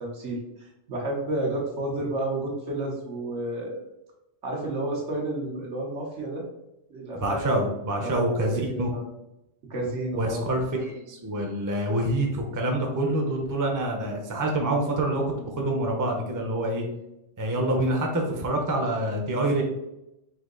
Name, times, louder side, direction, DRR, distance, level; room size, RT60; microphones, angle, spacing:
voice 1, 0.0-3.8 4.4-6.4 6.9-7.5 8.0-9.0 9.7-10.5, right 1 dB, 80° right, -2 dB, 1.4 m, -31 dB
voice 2, 7.1-8.9 10.1-16.9 17.4-19.6, right 1 dB, 20° right, 1 dB, 0.6 m, -26 dB
4.3 x 2.7 x 3.8 m, 0.88 s
omnidirectional pair, 1.2 m